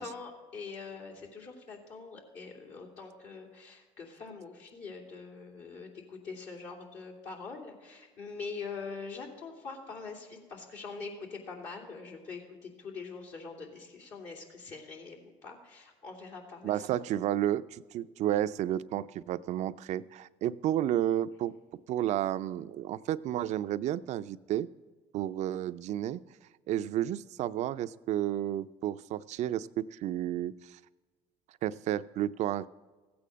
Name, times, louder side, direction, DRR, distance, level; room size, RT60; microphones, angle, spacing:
voice 1, 0.0-16.9, left 4 dB, 65° left, 0 dB, 2.8 m, -44 dB
voice 2, 16.6-21.5 21.9-24.7 25.1-26.2 26.7-30.8 31.6-32.7, right 12 dB, 60° right, 14 dB, 0.5 m, -31 dB
15.5 x 8.6 x 6.2 m, 1.3 s
supercardioid pair, 80°, 13 cm